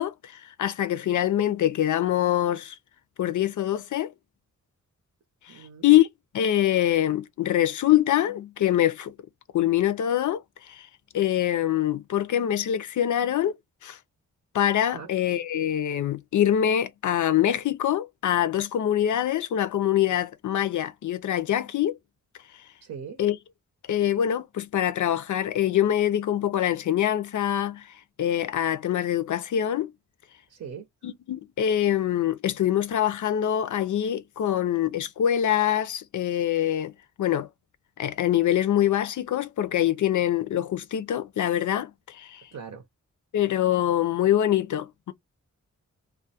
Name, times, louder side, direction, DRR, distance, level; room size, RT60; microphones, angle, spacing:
voice 1, 0.0-2.8 3.2-4.1 5.5-5.6 5.8-6.1 6.3-9.1 9.5-10.9 11.1-14.0 14.5-22.0 23.2-23.4 23.9-29.9 31.0-36.9 37.2-37.5 38.0-42.4 43.3-45.1, left 11 dB, 75° left, 0.5 m, -24 dB
voice 2, 5.5-5.9 14.9-15.1 22.8-23.2 30.5-30.9 42.5-42.8, right 6 dB, 70° right, 0.7 m, -40 dB
2.3 x 2.2 x 2.7 m
wide cardioid pair, 100°, 30 cm